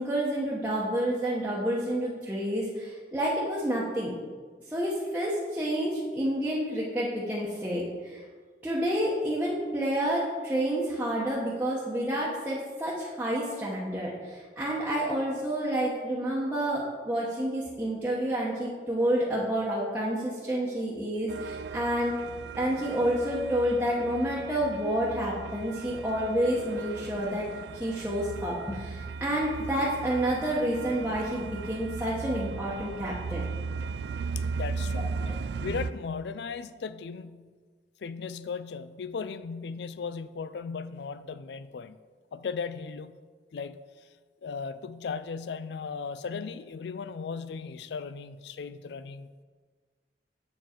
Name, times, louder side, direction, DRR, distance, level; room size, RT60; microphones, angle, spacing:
voice 1, 0.0-4.2 4.7-8.2 8.6-22.2 22.6-27.5 27.7-33.4 34.9-35.3, right 1 dB, 10° right, -7 dB, 1.0 m, -29 dB
sound 1, 21.3-35.9, right 5 dB, 70° right, 0.3 m, -37 dB
voice 2, 34.5-35.3 35.6-37.5 38.0-42.0 42.3-43.2 43.5-43.8 44.4-49.4, left 5 dB, 70° left, 14 dB, 0.4 m, -37 dB
7.6 x 7.1 x 4.4 m, 1.5 s
head